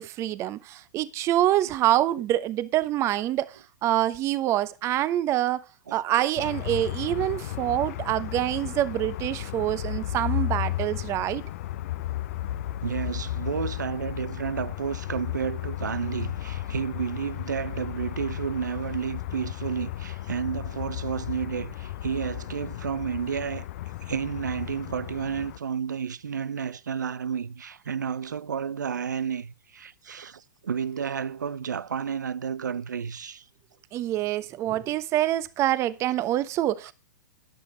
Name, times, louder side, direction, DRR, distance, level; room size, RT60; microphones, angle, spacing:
voice 1, 0.0-3.5 3.8-5.6 5.9-11.4 33.9-36.9, right 13 dB, 30° right, 1.0 m, -26 dB
sound 1, 6.4-25.6, left 14 dB, 50° left, 0.7 m, -34 dB
voice 2, 12.8-23.7 24.0-33.4, right 7 dB, 80° right, 0.8 m, -31 dB
13.0 x 10.5 x 3.3 m
hypercardioid pair, 115°, 10 cm